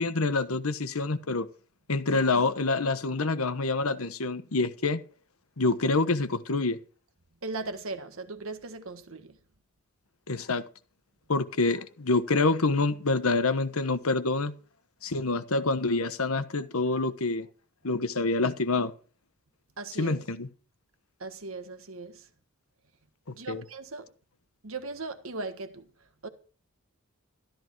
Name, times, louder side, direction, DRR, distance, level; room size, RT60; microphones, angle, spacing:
voice 1, 0.0-1.5 1.9-5.0 5.6-6.8 10.3-10.6 11.3-14.5 15.0-17.5 17.8-18.9 20.0-20.5 23.5-23.6, left 3 dB, 75° left, 1.2 m, -26 dB
voice 2, 7.4-9.4 19.8-20.2 21.2-22.3 23.3-24.1 24.6-25.9 26.2-26.3, right 3 dB, 65° right, 1.5 m, -38 dB
13.0 x 13.0 x 4.6 m
head